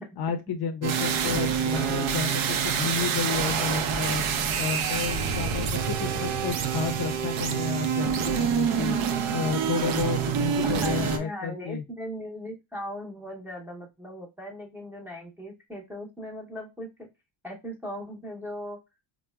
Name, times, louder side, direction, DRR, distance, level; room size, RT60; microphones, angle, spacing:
voice 1, 0.2-4.2 4.6-9.0 9.3-11.8, left 6 dB, 55° left, 6 dB, 0.5 m, -31 dB
sound 1, 0.8-11.2, right 7 dB, 75° right, 0.6 m, -27 dB
voice 2, 10.6-17.1 17.4-18.8, equal, 5° right, -2 dB, 0.6 m, -38 dB
4.4 x 2.1 x 2.2 m, 0.24 s
cardioid pair, 135°, 48 cm